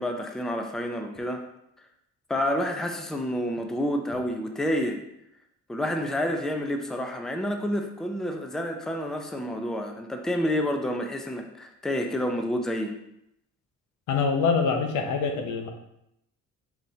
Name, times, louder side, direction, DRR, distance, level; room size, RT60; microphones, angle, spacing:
voice 1, 0.0-1.4 2.3-5.0 5.7-12.9, equal, ahead, 4 dB, 0.5 m, -29 dB
voice 2, 14.1-15.7, left 5 dB, 75° left, 4 dB, 0.8 m, -25 dB
4.4 x 4.2 x 2.7 m, 0.81 s
cardioid pair, 90°, 30 cm